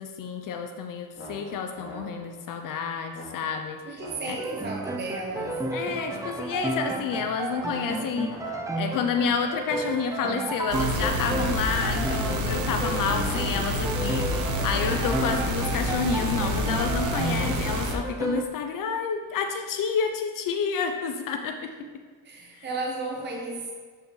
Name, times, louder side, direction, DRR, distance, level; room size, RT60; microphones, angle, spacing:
voice 1, 0.0-3.8 4.3-4.4 5.7-8.3 8.8-21.7 22.5-22.7, left 6 dB, 60° left, 5 dB, 0.7 m, -29 dB
sound 1, 1.1-2.5 3.1-4.6 5.3-6.8 7.5-9.1 9.6-11.1 11.8-12.4 12.6-13.4 13.9-16.3 17.0-17.4, left 1 dB, 40° left, 2.2 m, -44 dB
voice 2, 3.8-5.6 21.8-21.9 22.2-23.7, right 2 dB, 30° right, 0 dB, 1.0 m, -34 dB
sound 2, 4.4-18.4, right 2 dB, 10° right, 0.5 m, -32 dB
sound 3, 10.7-18.0, equal, 50° right, 1.0 m, -28 dB
8.1 x 5.7 x 3.2 m, 1.5 s
cardioid pair, 90°, 38 cm